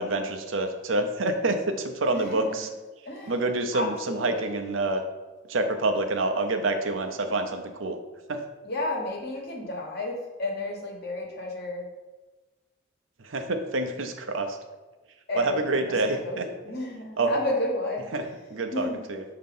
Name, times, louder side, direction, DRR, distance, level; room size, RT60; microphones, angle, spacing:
voice 1, 0.0-2.7 3.3-5.0 5.5-8.0 8.3-8.4 13.2-14.6 15.3-16.5 17.2-17.3 18.1-19.2, right 2 dB, 80° right, 5 dB, 0.7 m, -27 dB
voice 2, 2.1-2.6 3.1-3.3 3.7-4.5 8.6-11.8 15.3-15.6 16.2-16.4 16.7-18.2 18.7-19.0, left 1 dB, 55° left, 0 dB, 1.2 m, -32 dB
6.5 x 2.9 x 5.4 m, 1.2 s
head